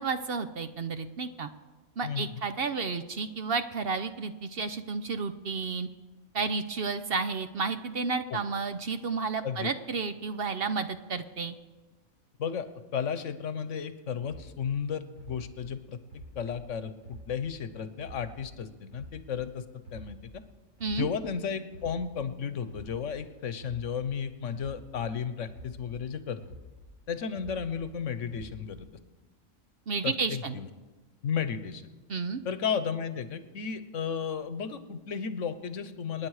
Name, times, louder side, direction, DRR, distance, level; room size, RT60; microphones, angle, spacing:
voice 1, 0.0-1.5 2.0-5.9 6.3-11.5 20.8-21.1 29.9-30.6 32.1-32.4, right 4 dB, 55° right, 10 dB, 0.8 m, -31 dB
voice 2, 2.0-2.3 8.3-8.4 9.4-9.7 12.4-12.7 12.9-16.9 17.3-19.6 19.9-20.4 20.9-26.4 27.1-28.9 30.0-30.7 31.2-31.8 32.4-36.3, left 7 dB, 70° left, 12 dB, 1.2 m, -33 dB
sound 1, 14.2-17.6 18.0-20.4 20.8-25.1 25.5-27.9 28.3-29.0, equal, 80° right, 7.7 m, -48 dB
27.5 x 9.8 x 4.8 m, 1.2 s
omnidirectional pair, 1.4 m